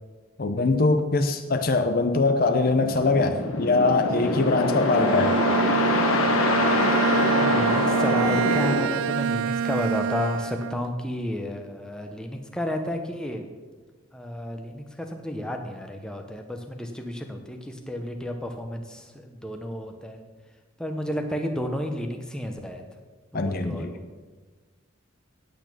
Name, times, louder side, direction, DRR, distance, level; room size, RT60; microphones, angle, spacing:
voice 1, 0.4-5.4 23.3-23.9, left 3 dB, 45° left, 7 dB, 0.6 m, -22 dB
sound 1, 2.7-8.9, left 2 dB, 80° left, 1.1 m, -24 dB
Bowed string instrument, 4.8-10.9, right 7 dB, 75° right, 0.3 m, -26 dB
voice 2, 7.3-13.4 14.1-20.2 20.8-22.8 23.3-24.0, equal, 5° left, 3 dB, 0.9 m, -32 dB
8.8 x 8.4 x 6.1 m, 1.3 s
head